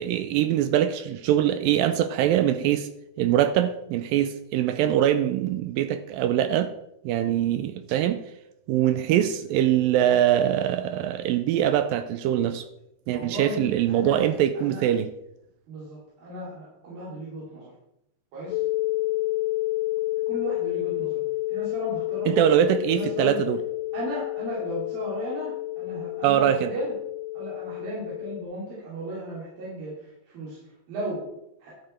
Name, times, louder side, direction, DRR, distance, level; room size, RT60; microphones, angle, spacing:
voice 1, 0.0-2.9 3.2-6.7 7.0-8.2 8.7-12.7 13.1-15.1 22.3-23.6 26.2-26.7, right 11 dB, 85° right, 2.1 m, -23 dB
voice 2, 13.1-14.3 14.5-14.8 15.7-17.7 18.3-18.6 20.3-21.2 21.5-22.6 22.9-23.4 23.9-26.9 27.3-30.6 30.9-31.3 31.6-31.7, right 1 dB, 65° right, 4.4 m, -35 dB
sound 1, 18.5-28.4, left 18 dB, 90° left, 2.6 m, -30 dB
12.0 x 7.7 x 4.3 m
omnidirectional pair, 4.5 m